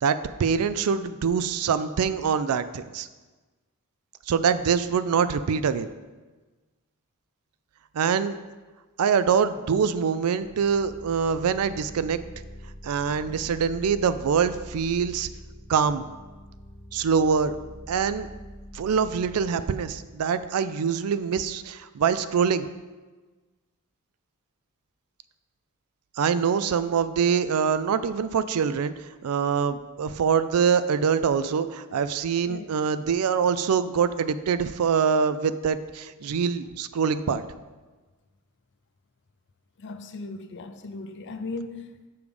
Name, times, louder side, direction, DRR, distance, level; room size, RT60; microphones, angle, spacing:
voice 1, 0.0-3.1 4.3-5.9 7.9-8.4 9.0-12.2 12.8-15.3 15.7-16.0 16.9-17.6 17.9-18.3 18.7-22.7 26.2-28.9 29.2-37.4, right 6 dB, 70° right, 0.4 m, -24 dB
sound 1, 10.4-19.5, equal, 10° left, 0.8 m, -44 dB
voice 2, 32.5-32.8 39.8-42.1, left 3 dB, 55° left, 0.5 m, -37 dB
7.0 x 4.8 x 5.1 m
head